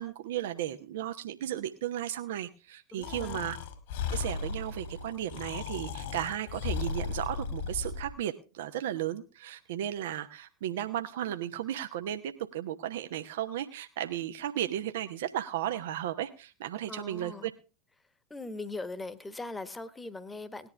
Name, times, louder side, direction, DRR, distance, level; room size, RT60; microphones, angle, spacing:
voice 1, 0.0-3.6 4.1-17.5, right 11 dB, 60° right, 8 dB, 0.9 m, -35 dB
voice 2, 2.9-3.4 16.9-17.5 18.3-20.7, left 2 dB, 10° left, 15 dB, 1.3 m, -40 dB
Breathing, 3.0-8.1, left 5 dB, 55° left, 2.1 m, -36 dB
18.5 x 11.0 x 3.4 m, 0.32 s
figure-of-eight pair, 85°, 0 cm